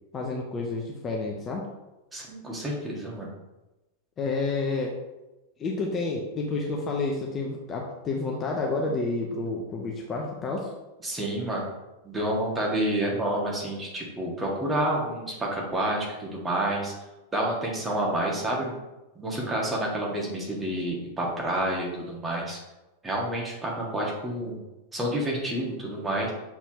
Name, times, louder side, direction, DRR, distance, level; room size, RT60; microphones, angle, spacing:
voice 1, 0.1-1.6 4.2-4.9 5.6-10.7, left 3 dB, 25° left, -1 dB, 0.9 m, -29 dB
voice 2, 2.1-3.3 11.0-11.7 12.0-16.9 17.3-18.7 19.2-22.6 23.0-24.6 24.9-26.3, right 1 dB, 15° right, -3 dB, 1.8 m, -29 dB
7.1 x 4.4 x 3.0 m, 1.0 s
figure-of-eight pair, 90°, 0 cm